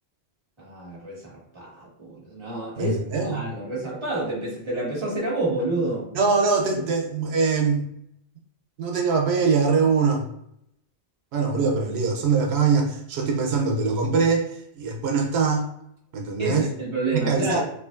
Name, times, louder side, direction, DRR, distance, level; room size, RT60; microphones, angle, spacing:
voice 1, 0.6-3.0 3.2-6.1 6.8-6.9 16.4-17.6, right 2 dB, 30° right, -7 dB, 1.5 m, -29 dB
voice 2, 2.8-3.5 6.1-7.9 8.8-10.2 11.3-15.6 16.1-16.7 17.1-17.6, right 5 dB, 90° right, 2 dB, 0.9 m, -23 dB
4.9 x 2.4 x 2.5 m, 0.74 s
omnidirectional pair, 1.0 m